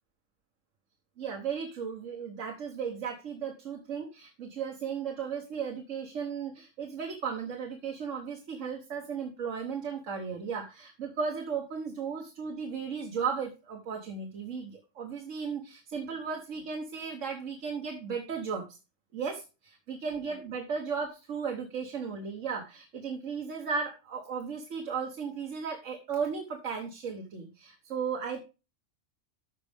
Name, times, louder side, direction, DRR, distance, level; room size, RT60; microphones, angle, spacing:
voice 1, 1.2-18.8 19.1-28.4, right 6 dB, 90° right, 2 dB, 1.6 m, -35 dB
14.0 x 5.2 x 3.5 m, 0.30 s
omnidirectional pair, 1.3 m